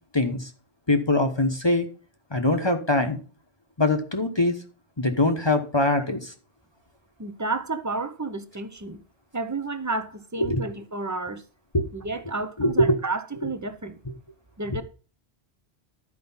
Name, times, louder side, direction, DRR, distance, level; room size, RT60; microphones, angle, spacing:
voice 1, 0.1-0.5 0.9-1.9 2.3-3.2 3.8-4.6 5.0-6.3 10.4-10.7 11.7-11.9 12.6-13.0 13.4-13.5, left 1 dB, 25° left, 1.0 m, -23 dB
voice 2, 7.2-9.0 9.3-11.4 11.9-14.0 14.6-14.8, right 3 dB, 20° right, 0.7 m, -31 dB
12.0 x 5.1 x 5.5 m
omnidirectional pair, 1.1 m